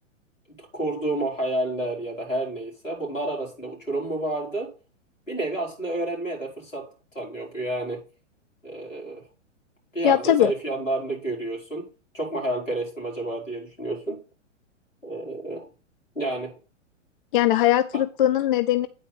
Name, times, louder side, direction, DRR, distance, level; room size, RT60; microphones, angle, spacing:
voice 1, 0.6-4.7 5.3-8.0 8.6-9.2 9.9-11.9 12.1-14.2 15.0-15.7 16.1-16.6, right 2 dB, 85° left, -2 dB, 4.3 m, -30 dB
voice 2, 10.0-10.5 17.3-18.9, left 12 dB, 45° left, 11 dB, 0.5 m, -20 dB
9.0 x 4.3 x 5.6 m, 0.34 s
figure-of-eight pair, 110°, 37 cm